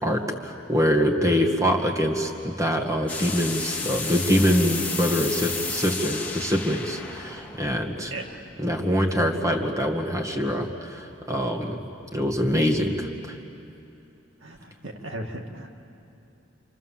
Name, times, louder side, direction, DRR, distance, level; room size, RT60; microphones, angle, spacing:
voice 1, 0.0-8.1 8.6-11.8 12.1-13.4, equal, 15° right, 1 dB, 2.0 m, -24 dB
sound 1, 3.1-8.8, left 4 dB, 10° left, 2.2 m, -33 dB
voice 2, 8.0-8.4 14.4-15.7, right 1 dB, 85° right, 1 dB, 2.3 m, -37 dB
28.0 x 27.5 x 7.5 m, 2.7 s
head